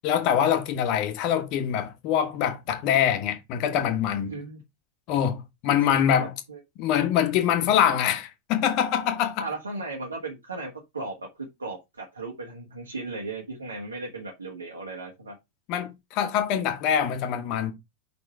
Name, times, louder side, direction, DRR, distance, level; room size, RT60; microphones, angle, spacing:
voice 1, 0.0-4.3 5.1-6.3 6.8-9.4 15.7-17.7, left 9 dB, 40° left, 1.4 m, -24 dB
voice 2, 4.3-4.6 6.1-6.6 9.4-11.3 11.6-15.3, right 3 dB, 75° right, 1.6 m, -36 dB
5.4 x 4.4 x 4.8 m
figure-of-eight pair, 90°, 0 cm